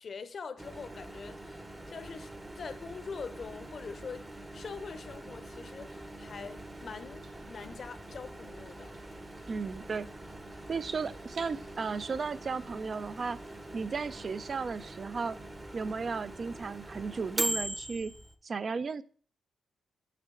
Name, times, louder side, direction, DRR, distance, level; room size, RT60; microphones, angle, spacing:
voice 1, 0.0-4.3 4.5-8.9, left 5 dB, 50° left, 0.7 m, -44 dB
Microwave oven, 0.6-18.3, right 1 dB, 15° right, 0.8 m, -42 dB
sound 1, 6.1-13.7, right 4 dB, 65° right, 1.5 m, -59 dB
voice 2, 9.5-10.1 10.7-13.4 13.7-15.4 15.7-18.1 18.4-19.0, right 4 dB, 45° right, 0.4 m, -35 dB
6.6 x 5.6 x 3.8 m
cardioid pair, 80°, 0 cm